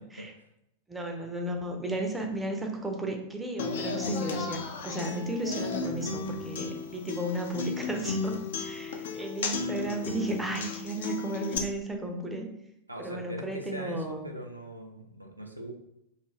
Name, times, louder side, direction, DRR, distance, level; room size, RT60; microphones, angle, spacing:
voice 1, 0.9-12.5 13.0-14.3, right 1 dB, 5° right, 2 dB, 0.4 m, -34 dB
Human voice / Acoustic guitar, 3.6-11.6, left 4 dB, 60° left, 0.3 m, -34 dB
voice 2, 12.9-15.7, right 1 dB, 85° right, 2 dB, 0.3 m, -41 dB
2.4 x 2.4 x 3.0 m, 0.81 s
figure-of-eight pair, 90°, 0 cm